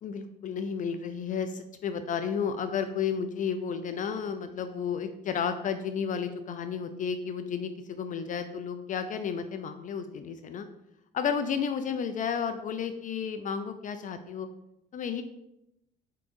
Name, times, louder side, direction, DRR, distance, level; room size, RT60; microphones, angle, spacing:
voice 1, 0.0-10.7 11.1-14.5 14.9-15.2, left 7 dB, 40° left, 9 dB, 0.4 m, -32 dB
4.7 x 3.7 x 2.6 m, 0.85 s
supercardioid pair, 75°, 20 cm